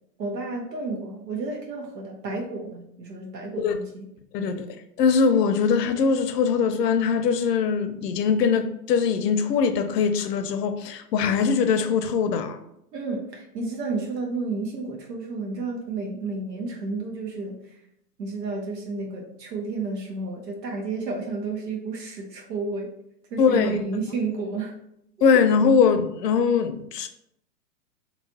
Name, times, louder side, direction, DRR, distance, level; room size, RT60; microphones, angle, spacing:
voice 1, 0.2-4.1 4.4-4.6 12.9-17.8 18.2-22.9 23.3-24.7 25.2-25.3, right 3 dB, 85° right, 1.4 m, -31 dB
voice 2, 4.3-4.6 5.0-12.6 23.4-23.8 25.2-27.1, left 6 dB, 80° left, 0.7 m, -21 dB
3.3 x 3.1 x 4.0 m
hypercardioid pair, 135°, 48 cm